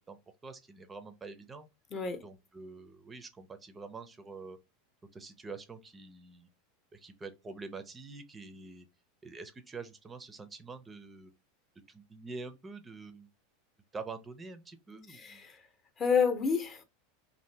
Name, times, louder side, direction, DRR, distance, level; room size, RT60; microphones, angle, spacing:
voice 1, 0.1-1.7 2.2-4.6 5.1-6.5 6.9-8.9 9.2-11.3 11.9-13.3 13.9-15.4, right 4 dB, 20° right, 0.5 m, -46 dB
voice 2, 1.9-2.2 15.1-15.6 16.0-16.8, left 6 dB, 30° left, 0.7 m, -29 dB
2.7 x 2.5 x 3.2 m
hypercardioid pair, 105°, 0 cm